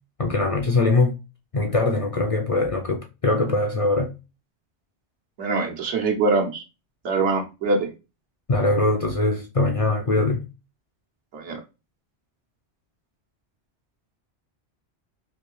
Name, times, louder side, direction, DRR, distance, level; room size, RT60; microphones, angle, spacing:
voice 1, 0.2-1.1 1.5-4.1 8.5-10.4, left 2 dB, 55° left, 0.3 m, -22 dB
voice 2, 5.4-6.6 7.0-7.9 11.3-11.6, right 3 dB, 85° right, 1.1 m, -23 dB
3.2 x 2.6 x 3.0 m
omnidirectional pair, 1.1 m